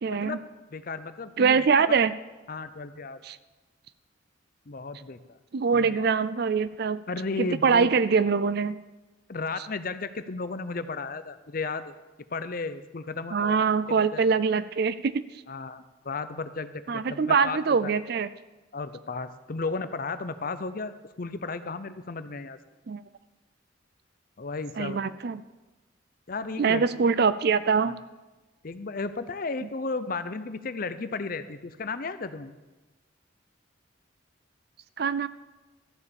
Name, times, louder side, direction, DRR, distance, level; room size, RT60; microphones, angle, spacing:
voice 1, 0.0-0.4 1.4-2.1 3.2-3.4 5.5-7.0 7.4-8.8 13.3-15.2 16.9-18.3 22.9-23.0 24.8-25.4 26.6-28.0 35.0-35.3, right 5 dB, 55° right, 15 dB, 0.4 m, -23 dB
voice 2, 0.7-1.6 2.5-3.2 4.7-5.2 5.7-6.0 7.1-7.9 9.3-11.9 12.3-13.6 13.9-14.2 15.5-17.9 18.7-20.9 21.2-22.6 24.4-25.0 26.3-26.9 27.9-28.0 28.6-32.5, left 3 dB, 45° left, 12 dB, 0.6 m, -34 dB
13.5 x 7.0 x 7.0 m, 1.1 s
head